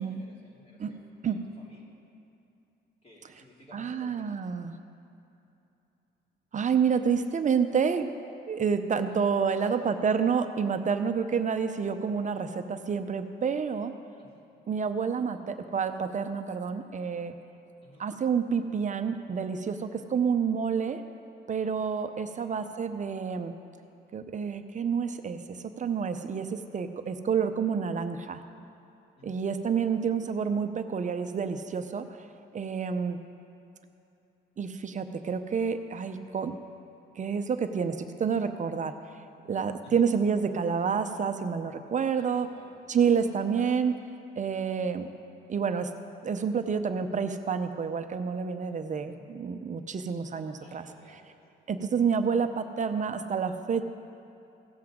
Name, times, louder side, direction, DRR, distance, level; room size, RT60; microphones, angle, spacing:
voice 1, 0.0-2.0 3.0-4.3 9.0-9.2 9.5-9.7 14.2-14.4 17.8-18.0 22.3-22.5 29.2-29.4 39.8-40.1 42.1-42.8 49.0-49.4 50.6-51.4 51.7-52.0, equal, 30° left, -3 dB, 2.6 m, -55 dB
voice 2, 3.7-4.8 6.5-8.1 8.5-13.9 14.7-17.3 18.0-21.0 21.5-23.5 24.1-28.4 29.2-32.3 32.5-33.2 34.6-36.6 37.2-39.0 39.5-42.5 42.9-44.0 44.4-45.1 45.5-45.9 46.2-50.9 51.7-53.8, right 6 dB, 40° right, 8 dB, 0.6 m, -29 dB
16.5 x 7.6 x 3.7 m, 2.8 s
cardioid pair, 90°, 20 cm